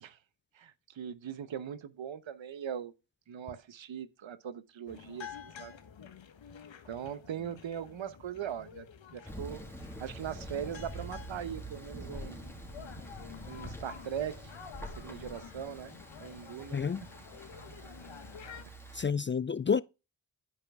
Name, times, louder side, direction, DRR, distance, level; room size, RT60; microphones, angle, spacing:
voice 1, 0.5-2.9 3.3-5.7 6.9-8.9 9.1-9.6 10.0-12.5 13.5-14.5 14.8-16.8 18.7-18.8, right 9 dB, 70° right, 1.1 m, -40 dB
sound 1, 4.9-18.6, left 7 dB, 70° left, 1.4 m, -50 dB
Thunder, 9.2-19.0, right 1 dB, 5° left, 2.7 m, -46 dB
voice 2, 16.7-17.0 18.9-19.8, left 6 dB, 25° left, 0.4 m, -29 dB
11.5 x 5.1 x 3.5 m
cardioid pair, 40°, 47 cm